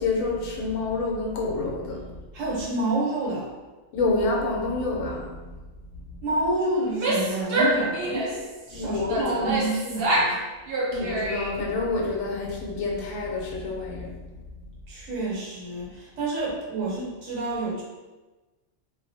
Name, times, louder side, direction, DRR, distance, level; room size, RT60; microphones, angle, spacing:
voice 1, 0.0-2.1 3.9-5.4 8.7-9.5 10.9-14.2, left 3 dB, 85° left, -2 dB, 1.0 m, -28 dB
voice 2, 2.3-3.5 6.2-8.4 8.7-10.4 14.9-17.8, right 2 dB, 75° right, -5 dB, 1.2 m, -28 dB
Female speech woman speaking / Yell, 6.8-8.5 9.1-10.4 10.7-11.6, right 1 dB, 60° right, 0.7 m, -26 dB
2.5 x 2.2 x 2.6 m, 1.2 s
omnidirectional pair, 1.4 m